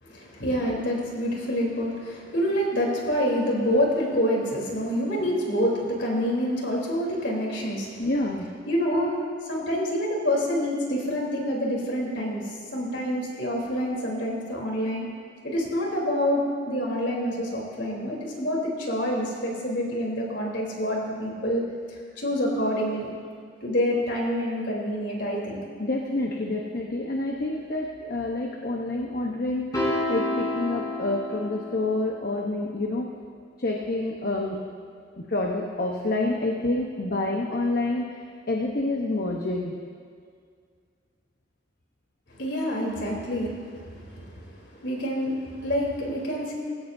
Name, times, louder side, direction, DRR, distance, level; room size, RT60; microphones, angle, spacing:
voice 1, 0.0-8.0 8.7-9.2 9.4-15.1 15.4-21.7 22.2-23.1 23.6-25.6 42.3-46.5, equal, 70° left, -2 dB, 3.6 m, -27 dB
voice 2, 8.0-8.5 25.8-33.1 33.6-34.6 35.2-38.1 38.5-39.7, left 2 dB, 50° left, 0 dB, 1.0 m, -28 dB
sound 1, 29.7-32.2, left 1 dB, 20° left, 3.7 m, -29 dB
20.5 x 16.0 x 2.7 m, 2.1 s
head